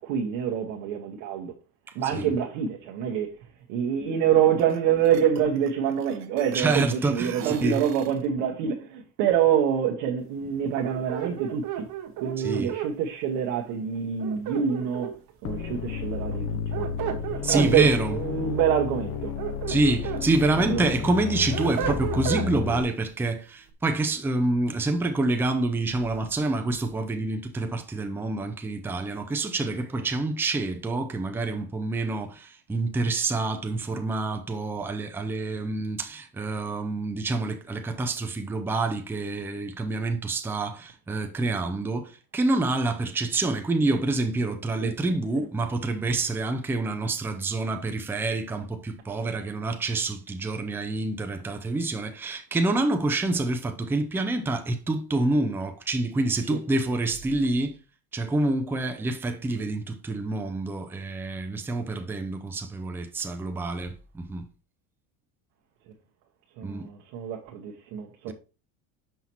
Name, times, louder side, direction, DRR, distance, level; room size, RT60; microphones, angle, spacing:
voice 1, 0.0-1.5 1.9-11.9 12.2-17.0 17.3-19.3 20.6-21.1 44.8-44.9 45.3-45.5 56.5-56.6 65.9-66.0 66.6-68.3, right 8 dB, 75° right, 1.1 m, -26 dB
sound 1, 4.6-4.8 5.0-6.8 7.1-8.3, right 9 dB, 40° right, 0.7 m, -38 dB
voice 2, 6.5-7.3 7.6-7.8 12.4-12.7 17.4-18.2 19.7-57.8 58.1-64.4 66.6-66.9, right 2 dB, 5° right, 0.4 m, -27 dB
sound 2, 10.8-12.9 14.2-15.3 16.5-17.7 19.1-20.3 20.7-22.5, right 10 dB, 60° right, 1.3 m, -32 dB
sound 3, 15.4-22.8, left 8 dB, 40° left, 0.6 m, -32 dB
5.7 x 5.6 x 2.9 m
cardioid pair, 125°, 40 cm